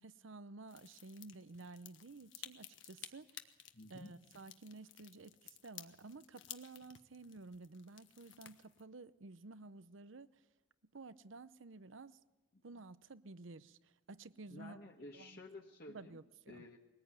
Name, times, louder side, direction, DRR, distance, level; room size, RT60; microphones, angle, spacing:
voice 1, 0.0-3.5 3.9-10.3 10.9-12.2 12.6-14.8 15.1-15.4 15.9-16.6, right 3 dB, 80° right, 0.8 m, -53 dB
sound 1, 0.7-8.8, left 11 dB, 75° left, 1.3 m, -55 dB
voice 2, 3.7-4.1 12.5-12.6 14.5-16.2 16.5-16.8, left 2 dB, 50° left, 1.5 m, -52 dB
22.5 x 19.0 x 8.9 m
head